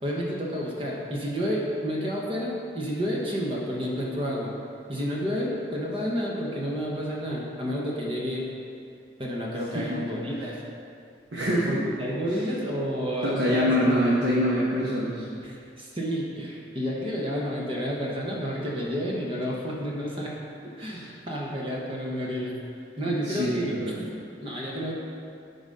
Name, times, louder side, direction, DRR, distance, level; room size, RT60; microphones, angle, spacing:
voice 1, 0.0-4.5 4.9-8.5 9.2-10.6 11.7-14.0 15.4-20.3 20.8-22.6 23.0-23.7 24.4-24.9, equal, 30° right, -4 dB, 1.0 m, -30 dB
voice 2, 11.3-11.8 13.2-15.3 20.9-21.1 23.0-24.1, equal, 85° right, -7 dB, 1.2 m, -25 dB
11.5 x 4.0 x 5.3 m, 2.4 s
head